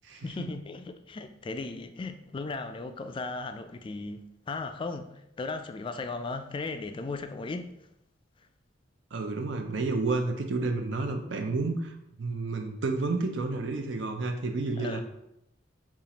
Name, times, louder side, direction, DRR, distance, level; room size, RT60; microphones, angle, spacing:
voice 1, 0.2-7.7 14.8-15.0, left 3 dB, 25° left, 8 dB, 0.3 m, -36 dB
voice 2, 9.1-15.0, right 3 dB, 65° right, 5 dB, 0.5 m, -30 dB
7.0 x 2.4 x 2.9 m, 0.81 s
head